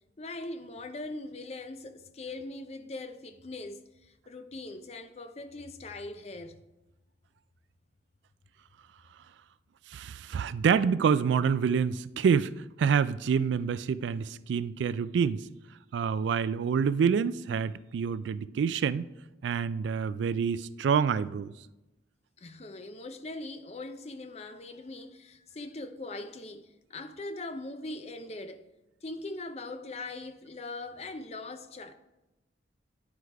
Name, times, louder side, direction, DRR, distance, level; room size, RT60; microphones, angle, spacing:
voice 1, 0.2-6.6 22.4-28.6 29.0-31.9, left 2 dB, 35° left, 0.5 m, -41 dB
voice 2, 9.9-12.5 12.8-15.4 15.9-19.1 19.4-21.5, right 6 dB, 80° right, 0.3 m, -27 dB
10.0 x 4.8 x 4.6 m
head